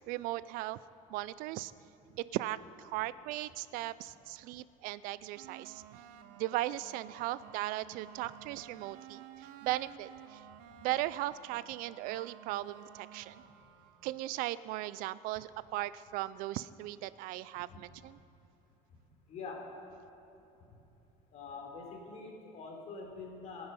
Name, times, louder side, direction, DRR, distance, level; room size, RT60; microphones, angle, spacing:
voice 1, 0.1-1.7 2.1-6.0 6.4-10.4 10.8-13.4 14.0-18.2, right 16 dB, 65° right, 17 dB, 0.5 m, -37 dB
sound 1, 5.4-14.2, right 9 dB, 85° right, 1.0 m, -54 dB
voice 2, 19.3-19.6 20.6-20.8 21.3-23.7, left 4 dB, 50° left, 0 dB, 3.5 m, -45 dB
26.5 x 9.7 x 5.5 m, 2.9 s
cardioid pair, 155°, 15 cm